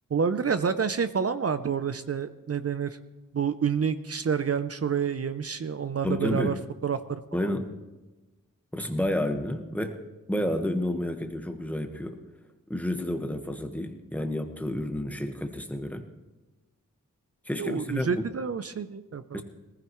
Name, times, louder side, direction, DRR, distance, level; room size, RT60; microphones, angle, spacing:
voice 1, 0.1-3.0 3.3-6.6 6.8-7.2 17.6-19.4, right 6 dB, 45° right, 11 dB, 0.6 m, -28 dB
voice 2, 6.0-6.6 7.3-7.7 8.7-10.0 10.3-12.2 12.7-16.0 17.4-18.2 19.3-19.4, left 1 dB, 5° left, 5 dB, 1.4 m, -30 dB
19.0 x 15.0 x 3.1 m, 1.1 s
wide cardioid pair, 80°, 33 cm